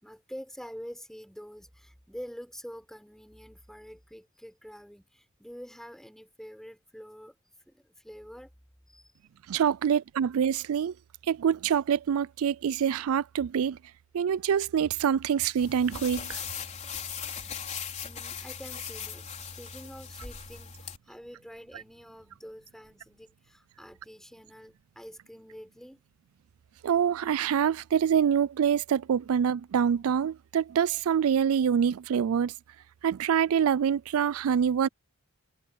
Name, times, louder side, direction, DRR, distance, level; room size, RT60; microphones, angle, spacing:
voice 1, 0.0-7.4 7.7-8.5 8.9-9.1 18.0-26.0, equal, ahead, 5.2 m, -46 dB
voice 2, 9.5-10.9 11.3-13.8 14.1-16.4 26.8-32.5 33.0-34.9, right 8 dB, 70° right, 0.3 m, -25 dB
sound 1, 15.6-21.0, left 7 dB, 35° left, 3.8 m, -39 dB
head